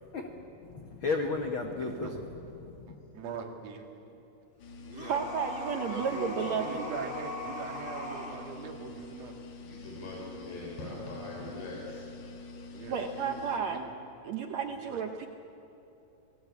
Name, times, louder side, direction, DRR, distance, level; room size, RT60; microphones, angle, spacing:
voice 1, 0.0-2.3 2.6-3.0, left 3 dB, 70° left, 4 dB, 1.2 m, -34 dB
voice 2, 2.9-3.9 4.8-5.3 5.9-9.5 12.7-13.9 14.7-15.0, right 5 dB, 45° right, 2 dB, 2.9 m, -42 dB
sound 1, 4.6-13.6, left 3 dB, 55° left, 2.8 m, -47 dB
sound 2, 4.9-8.4, left 2 dB, 15° left, 2.2 m, -39 dB
voice 3, 5.1-6.8 12.9-13.8 14.2-15.3, right 6 dB, 80° right, 5 dB, 1.5 m, -32 dB
voice 4, 9.6-12.0, left 2 dB, 90° left, -3 dB, 6.7 m, -41 dB
28.0 x 19.0 x 8.6 m, 3.0 s
omnidirectional pair, 4.5 m